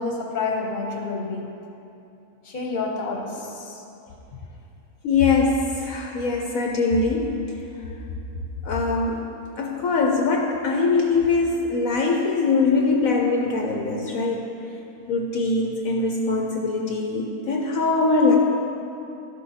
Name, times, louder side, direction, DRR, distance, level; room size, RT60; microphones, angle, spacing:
voice 1, 0.0-1.5 2.4-3.8, left 3 dB, 35° left, 0 dB, 1.1 m, -29 dB
voice 2, 5.0-7.4 8.6-9.2 9.6-14.5 15.1-18.4, left 3 dB, 65° left, 0 dB, 1.1 m, -22 dB
13.0 x 6.2 x 4.2 m, 2.8 s
omnidirectional pair, 1.6 m